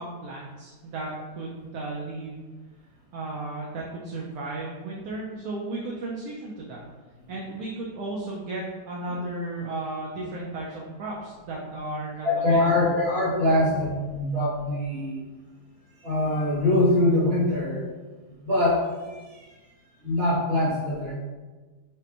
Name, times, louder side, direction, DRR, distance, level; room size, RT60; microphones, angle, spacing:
voice 1, 0.0-2.4 3.1-6.8 7.3-12.9, right 2 dB, 70° right, -3 dB, 1.0 m, -34 dB
voice 2, 12.2-15.2 16.0-17.8 18.4-19.4 20.0-21.1, left 1 dB, 40° right, -7 dB, 1.4 m, -23 dB
5.0 x 2.1 x 2.8 m, 1.3 s
omnidirectional pair, 1.7 m